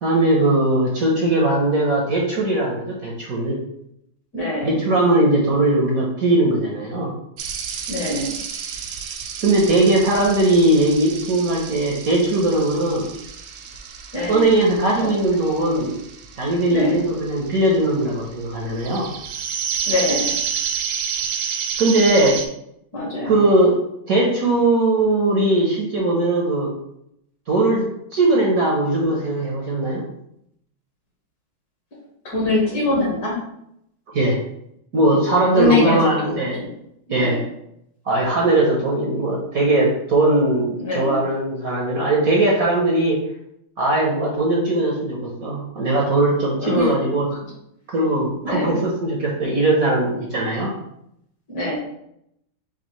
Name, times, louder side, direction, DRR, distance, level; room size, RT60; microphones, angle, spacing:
voice 1, 0.0-3.6 4.6-7.1 9.4-13.1 14.3-15.9 16.4-19.1 21.8-22.4 23.2-23.8 24.1-26.7 27.5-30.0 34.1-34.4 34.9-36.6 37.1-37.4 38.0-43.2 43.8-47.3 47.9-50.7, right 2 dB, 60° right, -3 dB, 1.0 m, -19 dB
voice 2, 4.3-4.8 7.9-8.3 14.1-14.5 15.0-15.1 16.7-17.0 19.9-20.4 22.9-23.4 32.2-33.4 35.5-36.7 37.1-37.5 40.8-41.2 46.6-46.9 47.3-47.4 48.4-48.8 51.5-51.8, left 2 dB, 50° left, -3 dB, 1.7 m, -23 dB
sound 1, 7.4-22.5, right 7 dB, 80° right, 1.4 m, -30 dB
7.1 x 2.4 x 3.0 m, 0.76 s
omnidirectional pair, 2.2 m